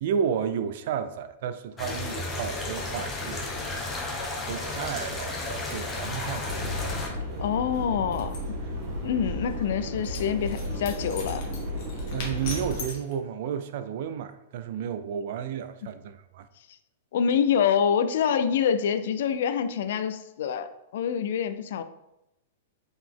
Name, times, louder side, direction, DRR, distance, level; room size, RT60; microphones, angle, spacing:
voice 1, 0.0-3.7 4.5-7.5 12.1-16.5, right 8 dB, 60° right, 0.3 m, -32 dB
sound 1, 1.8-7.1, left 2 dB, 15° left, 0.8 m, -33 dB
sound 2, 6.4-12.8, left 1 dB, 35° right, 1.2 m, -33 dB
voice 2, 7.4-8.3 9.0-11.4 15.8-15.9 17.1-21.8, left 7 dB, 65° left, 0.3 m, -26 dB
sound 3, 8.1-8.4 10.0-13.1, left 4 dB, 50° left, 1.1 m, -40 dB
3.9 x 2.8 x 3.6 m
hypercardioid pair, 140°, 0 cm